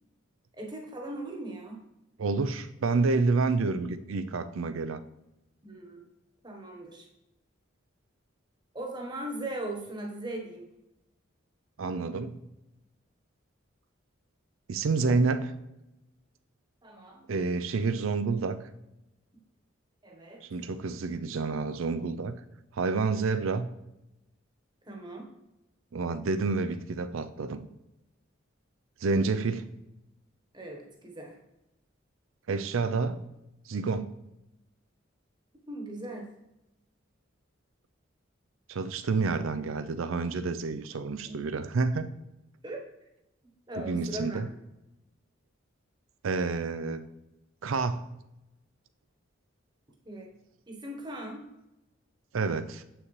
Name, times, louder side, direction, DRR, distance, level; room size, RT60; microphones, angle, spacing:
voice 1, 0.6-1.8 5.6-6.0 6.4-7.1 8.7-10.7 16.8-17.2 20.0-20.4 24.8-25.3 30.5-31.4 35.7-36.3 41.1-41.4 42.6-42.8 43.7-44.4 50.0-50.3 50.7-51.5, right 1 dB, 20° right, 1 dB, 1.0 m, -39 dB
voice 2, 2.2-5.0 11.8-12.4 14.7-15.5 17.3-18.6 20.5-22.3 22.7-23.7 25.9-27.7 29.0-29.7 32.5-33.2 33.7-34.1 38.7-42.1 43.8-44.5 46.2-47.0 47.6-48.0 52.3-52.8, right 4 dB, 90° right, 12 dB, 0.5 m, -29 dB
7.9 x 6.1 x 3.2 m, 0.91 s
head